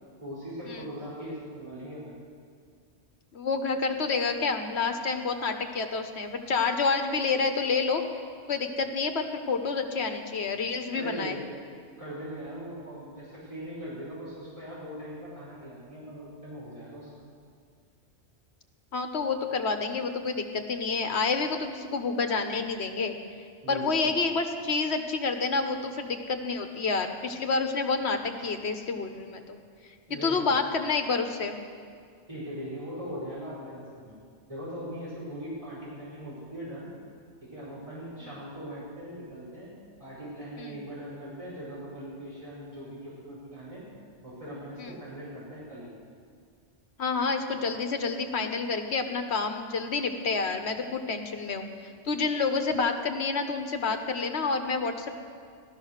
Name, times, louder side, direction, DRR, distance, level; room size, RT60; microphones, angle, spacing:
voice 1, 0.2-2.2 10.9-11.4 12.0-17.1 23.6-24.2 30.1-30.6 32.3-34.2 34.5-36.9 37.4-39.7 40.0-43.8 44.2-45.9, equal, 30° right, -10 dB, 5.1 m, -40 dB
voice 2, 3.3-8.0 8.5-11.4 18.9-23.2 23.7-29.6 30.2-31.6 40.6-40.7 44.8-44.9 47.0-55.2, left 4 dB, 75° left, 6 dB, 1.4 m, -29 dB
16.0 x 12.5 x 6.5 m, 2.2 s
omnidirectional pair, 1.1 m